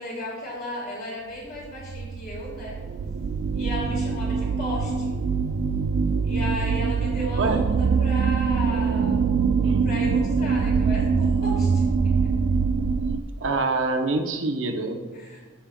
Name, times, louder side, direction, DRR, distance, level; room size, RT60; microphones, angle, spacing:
voice 1, 0.0-2.8 3.5-5.2 6.2-9.2 9.8-12.1 15.1-15.4, left 1 dB, 50° left, -5 dB, 2.4 m, -35 dB
sound 1, 1.6-13.2, right 5 dB, 85° right, 0.4 m, -24 dB
voice 2, 13.4-15.1, right 3 dB, 70° right, 5 dB, 0.7 m, -26 dB
13.5 x 5.2 x 2.2 m, 1.4 s
head